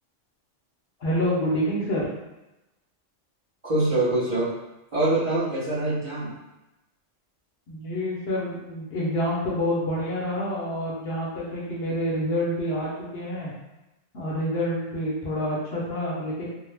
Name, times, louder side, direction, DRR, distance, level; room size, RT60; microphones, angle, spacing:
voice 1, 1.0-2.1 7.7-13.5 14.1-16.5, equal, 60° left, -5 dB, 0.8 m, -27 dB
voice 2, 3.6-4.5 4.9-6.3, right 2 dB, 35° right, -10 dB, 0.7 m, -24 dB
2.7 x 2.0 x 3.2 m, 1.0 s
omnidirectional pair, 1.3 m